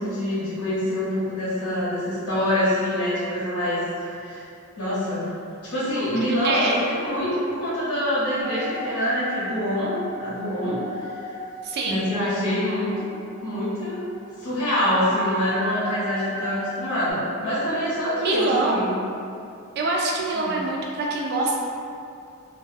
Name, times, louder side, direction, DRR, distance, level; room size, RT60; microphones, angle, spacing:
voice 1, 0.0-4.4 4.8-5.3 5.6-11.3 11.8-13.0 13.4-14.0 14.4-18.9 20.4-20.6, equal, 75° left, -10 dB, 0.7 m, -25 dB
voice 2, 6.3-6.8 11.6-12.0 18.2-18.9 19.8-21.6, right 2 dB, 50° right, -2 dB, 0.4 m, -25 dB
sound 1, 8.4-17.1, equal, 30° left, 0.5 m, -36 dB
2.6 x 2.3 x 2.3 m, 2.5 s
head